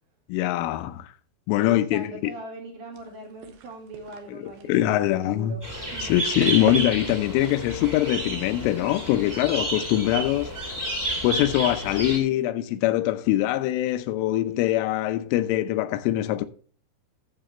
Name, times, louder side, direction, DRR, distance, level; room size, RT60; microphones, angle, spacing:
voice 1, 0.3-1.1 1.5-2.3 4.3-5.6 6.0-10.7 11.2-16.5, left 14 dB, 85° left, 3.2 m, -23 dB
voice 2, 1.6-5.6 5.9-6.1 12.0-12.5, right 2 dB, 50° right, 2.9 m, -41 dB
sound 1, 2.9-8.6, right 6 dB, 70° right, 2.8 m, -40 dB
sound 2, 5.6-12.2, right 1 dB, 10° right, 1.1 m, -31 dB
11.5 x 7.9 x 3.2 m
omnidirectional pair, 5.6 m